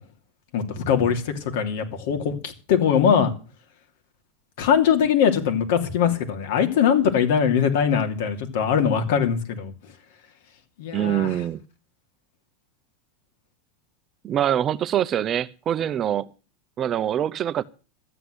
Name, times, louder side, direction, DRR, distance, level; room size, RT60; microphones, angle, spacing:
voice 1, 0.5-3.3 4.6-9.7 10.8-11.3, left 7 dB, 70° left, 2.8 m, -21 dB
voice 2, 10.9-11.6 14.2-16.3 16.8-17.6, right 10 dB, 30° right, 0.6 m, -24 dB
13.0 x 8.1 x 7.9 m
supercardioid pair, 130°, 0 cm